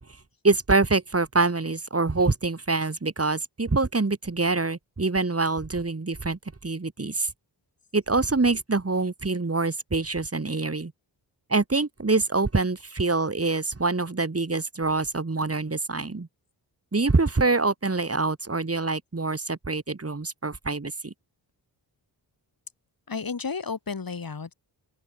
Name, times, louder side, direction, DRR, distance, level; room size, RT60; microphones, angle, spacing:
voice 1, 0.4-7.3 7.9-10.9 11.5-16.3 16.9-21.1, right 3 dB, 30° right, 4.6 m, -25 dB
voice 2, 23.1-24.5, left 5 dB, 50° left, 5.1 m, -32 dB
open air
cardioid pair, 60°, 44 cm